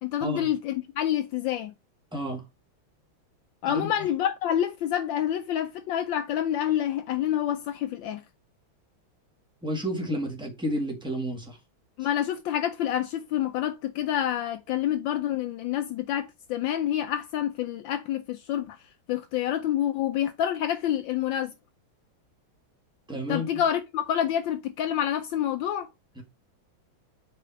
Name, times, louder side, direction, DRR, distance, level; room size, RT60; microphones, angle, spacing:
voice 1, 0.0-1.7 3.6-8.2 12.0-18.8 19.1-21.5 23.3-25.9, left 11 dB, 75° left, 1.2 m, -28 dB
voice 2, 2.1-2.4 3.7-3.9 9.6-11.6 23.1-23.5 26.2-26.3, equal, 5° right, 1.5 m, -31 dB
4.9 x 3.9 x 5.6 m
omnidirectional pair, 2.2 m